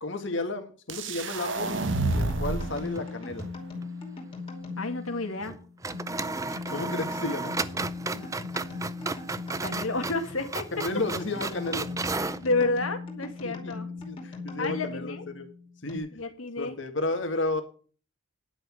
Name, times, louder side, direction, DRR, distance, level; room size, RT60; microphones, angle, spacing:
voice 1, 0.0-1.8 2.2-3.4 6.5-7.5 10.7-11.9 12.2-12.5 13.4-13.7 14.0-15.5 15.8-16.1 16.6-17.6, left 2 dB, 60° left, 6 dB, 1.9 m, -32 dB
sound 1, 0.9-2.9, right 2 dB, 65° right, 1.2 m, -29 dB
sound 2, 1.5-16.0, left 4 dB, 25° left, 2.7 m, -39 dB
sound 3, 2.7-3.5 3.8-3.9 5.4-5.6 5.8-12.4, right 3 dB, 15° right, 0.4 m, -34 dB
voice 2, 4.8-5.6 8.2-8.3 9.6-10.7 12.4-13.9 14.6-15.2 16.1-16.8, left 3 dB, 90° left, 6 dB, 2.1 m, -30 dB
10.5 x 6.1 x 7.7 m, 0.40 s
head